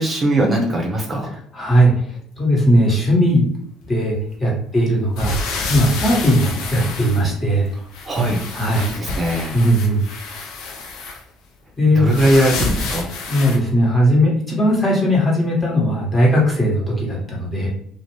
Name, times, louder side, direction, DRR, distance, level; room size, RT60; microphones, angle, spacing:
voice 1, 0.0-1.4 8.0-9.6 11.9-13.1, right 1 dB, 30° right, 0 dB, 0.6 m, -20 dB
voice 2, 1.5-3.4 3.9-5.4 5.7-7.7 8.5-8.8 9.5-10.0 11.8-12.0 13.3-17.7, equal, 25° left, -3 dB, 1.3 m, -18 dB
sound 1, 5.1-7.6 7.9-11.2 12.1-13.6, left 3 dB, 60° left, 0.5 m, -28 dB
2.4 x 2.1 x 3.1 m, 0.67 s
figure-of-eight pair, 55°, 0 cm